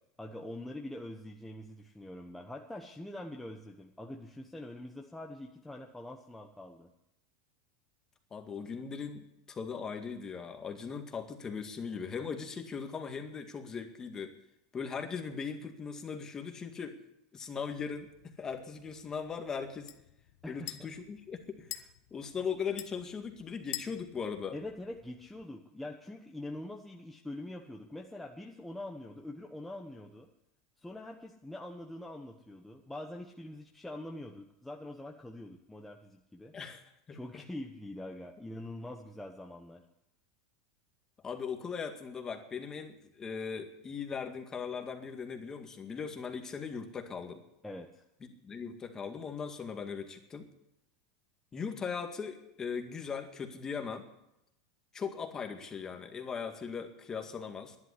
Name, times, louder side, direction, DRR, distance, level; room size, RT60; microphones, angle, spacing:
voice 1, 0.2-6.9 20.4-20.9 24.5-30.3 30.8-36.5 37.1-39.8 47.6-48.0, left 1 dB, 5° left, 1 dB, 1.2 m, -44 dB
voice 2, 8.3-14.4 14.7-17.0 17.3-19.9 20.5-24.6 36.5-37.4 41.2-47.4 48.4-50.5 51.5-54.1 54.9-57.8, left 6 dB, 25° left, 5 dB, 2.0 m, -39 dB
sound 1, 17.6-25.4, left 15 dB, 70° left, 1.1 m, -49 dB
11.5 x 11.0 x 9.9 m, 0.85 s
supercardioid pair, 120°, 3 cm